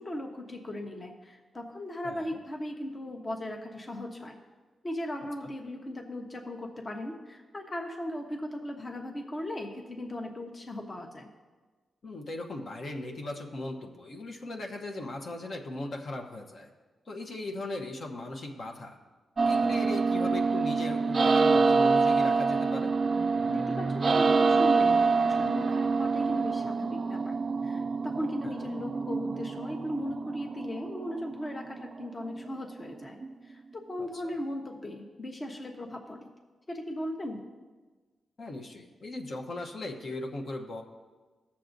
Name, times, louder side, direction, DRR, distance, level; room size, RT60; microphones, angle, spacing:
voice 1, 0.0-4.4 4.8-11.3 23.5-33.2 33.5-36.3 36.7-37.4, left 1 dB, 30° left, 2 dB, 0.9 m, -37 dB
voice 2, 2.0-2.4 12.0-16.7 17.1-19.0 19.4-22.9 28.4-28.5 34.0-34.3 38.4-40.8, left 2 dB, 55° left, 2 dB, 0.9 m, -38 dB
sound 1, 19.4-33.3, right 4 dB, 40° right, 0.4 m, -26 dB
17.5 x 7.0 x 2.6 m, 1.3 s
wide cardioid pair, 120°, 0 cm